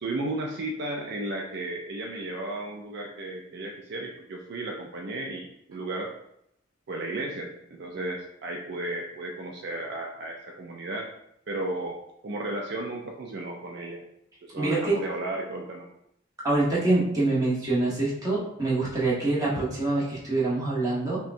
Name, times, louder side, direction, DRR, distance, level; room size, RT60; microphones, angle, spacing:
voice 1, 0.0-6.1 6.9-11.1 11.5-12.0 12.2-14.0 14.4-15.9, right 2 dB, 55° right, 0 dB, 0.4 m, -34 dB
voice 2, 14.6-14.9 16.4-21.2, right 2 dB, 15° right, -7 dB, 1.1 m, -25 dB
5.5 x 2.2 x 2.6 m, 0.76 s
head